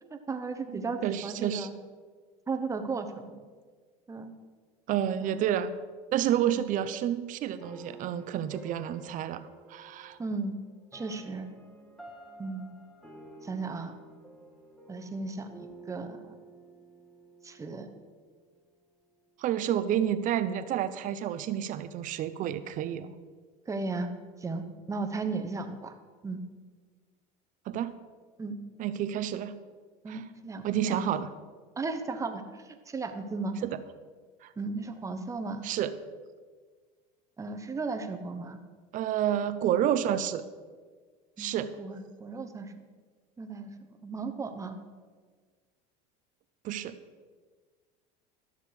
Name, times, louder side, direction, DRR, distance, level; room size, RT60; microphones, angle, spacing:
voice 1, 0.0-1.7 2.5-3.4 4.1-4.3 5.1-5.4 6.4-6.6 10.2-10.6 10.9-11.5 12.4-12.7 13.4-13.9 14.9-16.4 17.4-17.9 23.7-24.1 24.4-25.9 26.2-26.4 28.4-28.5 30.0-31.1 31.8-33.6 34.6-35.6 37.4-38.6 41.4-42.7 43.4-44.8, right 3 dB, 20° right, 6 dB, 1.0 m, -35 dB
voice 2, 0.7-1.7 4.9-5.7 6.1-10.2 19.4-23.1 27.7-27.9 28.8-29.5 30.1-30.2 30.6-31.3 33.6-33.8 34.4-34.5 35.6-35.9 38.9-40.4 41.4-41.7 46.6-47.0, right 10 dB, 50° right, 12 dB, 0.6 m, -30 dB
sound 1, 7.6-18.7, right 2 dB, ahead, 1.5 m, -51 dB
12.5 x 6.6 x 4.9 m, 1.5 s
supercardioid pair, 115°, 17 cm